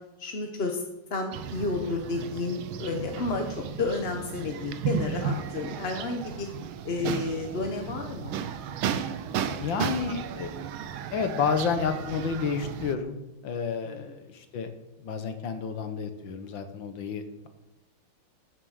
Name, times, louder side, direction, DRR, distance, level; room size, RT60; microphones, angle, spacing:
voice 1, 0.2-0.8 1.1-6.5 6.8-8.4 13.8-14.1, left 3 dB, 40° left, 3 dB, 0.9 m, -31 dB
sound 1, 1.3-12.9, right 7 dB, 90° right, 1.6 m, -34 dB
voice 2, 9.5-10.5 11.1-13.2 13.4-14.7 15.0-17.5, left 6 dB, 70° left, 8 dB, 1.8 m, -30 dB
14.0 x 7.4 x 6.5 m, 1.0 s
omnidirectional pair, 2.2 m